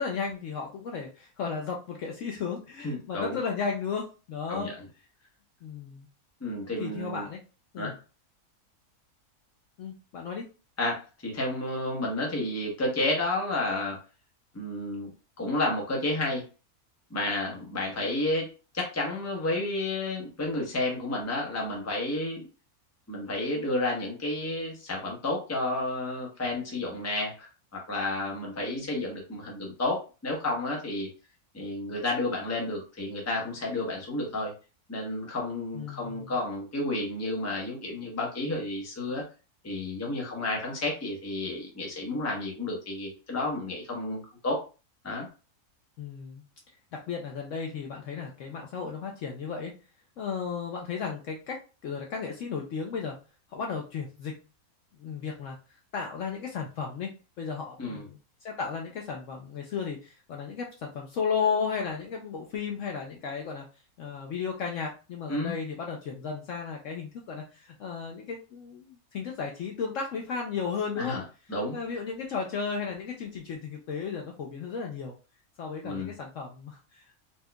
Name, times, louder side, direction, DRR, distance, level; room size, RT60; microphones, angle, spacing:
voice 1, 0.0-4.7 5.6-6.1 6.8-7.4 7.7-8.0 9.8-10.4 28.8-28.9 35.7-36.3 46.0-46.4 46.9-49.7 50.2-53.2 53.5-54.4 55.0-55.6 55.9-57.1 57.4-63.6 64.0-71.2 71.7-75.1 75.6-77.1, left 5 dB, 65° left, 0 dB, 0.8 m, -34 dB
voice 2, 2.8-3.4 4.5-4.7 6.4-7.3 7.8-7.9 10.8-14.0 14.5-15.1 15.4-16.4 17.1-18.5 18.7-22.5 23.1-31.1 31.5-34.5 34.9-39.2 39.6-44.6 45.0-45.3 57.8-58.0 65.3-65.5 71.0-71.2 71.5-71.8 75.8-76.1, left 2 dB, 15° left, -1 dB, 0.7 m, -31 dB
4.3 x 2.4 x 2.2 m, 0.32 s
omnidirectional pair, 1.6 m